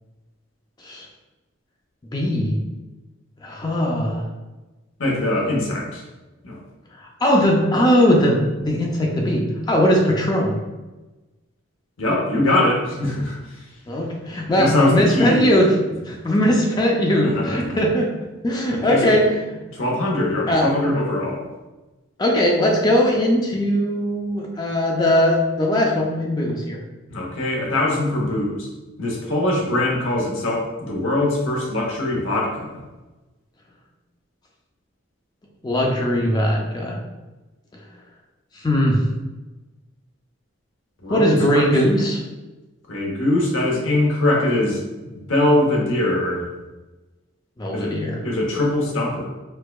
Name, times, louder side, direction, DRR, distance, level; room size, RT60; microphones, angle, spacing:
voice 1, 2.1-2.6 3.4-4.2 7.0-10.6 13.9-15.7 16.1-18.1 18.4-19.4 20.5-20.7 22.2-26.8 35.6-37.0 38.5-39.0 41.1-42.2 47.6-48.2, equal, 20° left, -1 dB, 0.4 m, -19 dB
voice 2, 5.0-6.0 6.4-6.6 12.0-13.6 14.5-15.5 17.2-17.8 18.7-19.2 19.7-21.5 27.1-28.7 29.0-32.8 41.0-41.7 42.9-46.5 47.7-48.0 48.2-49.3, left 1 dB, 70° left, -2 dB, 0.9 m, -22 dB
4.5 x 2.2 x 2.3 m, 1.1 s
head